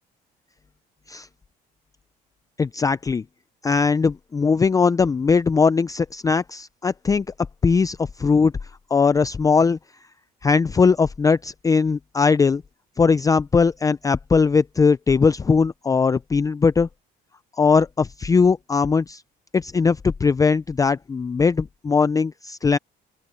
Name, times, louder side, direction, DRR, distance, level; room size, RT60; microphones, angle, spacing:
voice 1, 2.6-3.2 3.6-7.3 7.6-8.5 8.9-9.8 10.4-12.6 13.0-16.9 17.6-19.2 19.5-22.8, left 5 dB, 20° left, 0.4 m, -19 dB
open air
cardioid pair, 110°, 17 cm